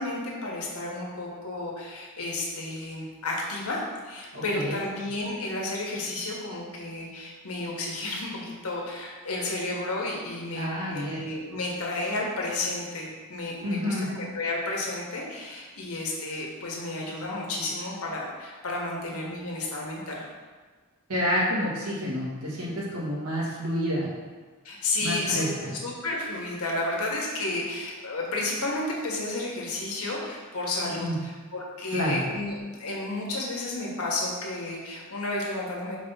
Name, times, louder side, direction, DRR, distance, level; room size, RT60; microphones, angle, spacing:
voice 1, 0.0-20.3 24.6-25.5 25.8-36.0, left 2 dB, 75° left, -2 dB, 1.3 m, -32 dB
voice 2, 4.3-4.8 10.5-11.2 13.6-14.1 21.1-24.1 25.0-25.7 31.0-31.2 31.9-32.2, equal, 90° right, -6 dB, 1.8 m, -29 dB
4.9 x 3.5 x 5.5 m, 1.4 s
head